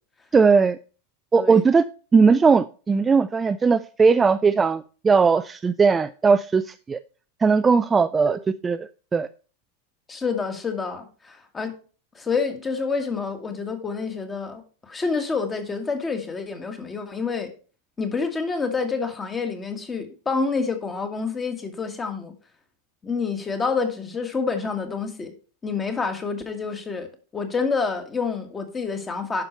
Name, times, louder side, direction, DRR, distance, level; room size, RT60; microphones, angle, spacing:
voice 1, 0.3-0.8 1.3-1.8 2.1-7.0 7.4-9.3, right 5 dB, 15° right, 12 dB, 0.3 m, -19 dB
voice 2, 10.1-11.7 12.2-17.5 18.0-22.3 23.0-25.3 25.6-29.4, left 4 dB, 15° left, 7 dB, 1.6 m, -28 dB
10.5 x 6.0 x 4.4 m, 0.37 s
figure-of-eight pair, 90°, 0 cm